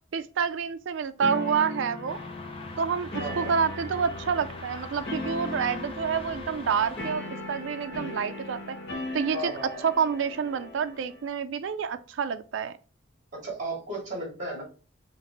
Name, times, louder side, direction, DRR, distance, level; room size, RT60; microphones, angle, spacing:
voice 1, 0.1-2.2 2.8-7.2 7.5-8.8 9.1-12.7, right 6 dB, 70° right, 0.4 m, -28 dB
sound 1, 1.2-11.3, left 2 dB, 60° left, 1.0 m, -38 dB
sound 2, 2.1-7.1, left 2 dB, 30° left, 0.5 m, -42 dB
voice 2, 3.2-3.5 9.3-9.8 13.3-14.6, right 2 dB, 35° right, 2.4 m, -34 dB
5.8 x 2.6 x 3.0 m
head